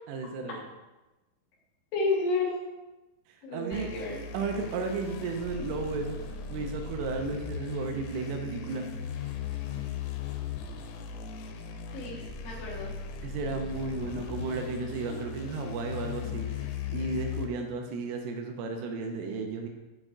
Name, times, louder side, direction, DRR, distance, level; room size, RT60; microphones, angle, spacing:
voice 1, 0.1-0.6 3.5-3.9 4.3-6.2 6.5-8.9 13.2-16.5 16.9-19.7, right 3 dB, 85° right, 3 dB, 3.3 m, -33 dB
voice 2, 1.9-2.6 3.4-4.2 11.9-12.9, left 3 dB, 70° left, -3 dB, 2.2 m, -31 dB
sound 1, 3.7-17.5, left 6 dB, 85° left, 3.3 m, -38 dB
7.6 x 5.1 x 3.7 m, 1.1 s
omnidirectional pair, 5.8 m